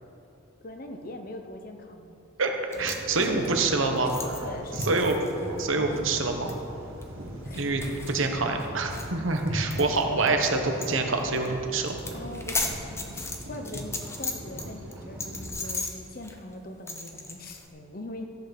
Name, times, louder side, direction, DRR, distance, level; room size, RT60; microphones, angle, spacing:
voice 1, 0.6-2.2 3.2-5.0 5.3-5.4 7.5-7.7 12.1-18.3, left 1 dB, 45° left, 5 dB, 0.9 m, -41 dB
voice 2, 2.4-4.1 4.8-5.2 5.6-6.5 7.5-11.9, right 3 dB, 75° right, 4 dB, 1.3 m, -26 dB
sound 1, 2.7-10.5 10.8-10.9 11.2-11.5 11.8-14.7 14.9-17.7, left 3 dB, 15° left, 0.8 m, -37 dB
sound 2, 2.7-15.5, equal, 90° right, 1.8 m, -40 dB
14.0 x 8.1 x 6.0 m, 2.8 s
head